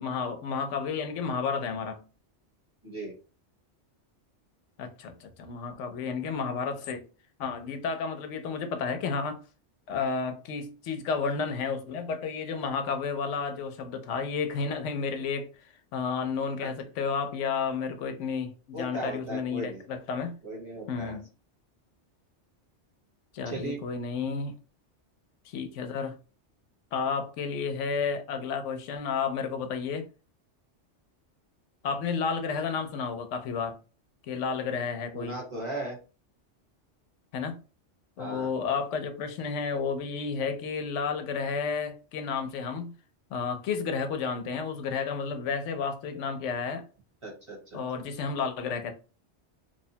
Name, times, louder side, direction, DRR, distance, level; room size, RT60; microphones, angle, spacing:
voice 1, 0.0-2.0 4.8-7.0 7.4-9.4 9.9-20.4 20.9-21.3 23.3-24.6 25.5-26.1 26.9-30.1 31.8-33.8 34.3-35.4 37.3-37.6 38.2-42.9 43.3-46.8 47.7-48.9, left 5 dB, 90° left, 0.9 m, -31 dB
voice 2, 2.8-3.1 16.6-16.7 18.7-19.8 20.4-21.2 23.4-23.8 35.1-36.0 38.2-38.5 47.2-47.8, right 1 dB, 30° right, 1.0 m, -37 dB
2.9 x 2.1 x 2.7 m
omnidirectional pair, 1.2 m